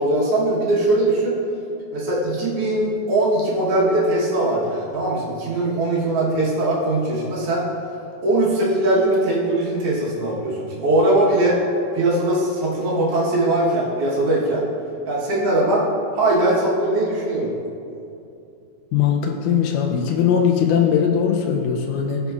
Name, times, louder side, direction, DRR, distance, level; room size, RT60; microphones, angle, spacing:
voice 1, 0.0-1.3 1.9-7.7 8.2-11.6 11.9-14.6 15.0-15.8 16.1-17.5, right 1 dB, 65° right, -6 dB, 1.5 m, -20 dB
voice 2, 18.9-22.2, left 8 dB, 90° left, 2 dB, 1.8 m, -20 dB
15.0 x 5.3 x 2.4 m, 2.7 s
omnidirectional pair, 4.3 m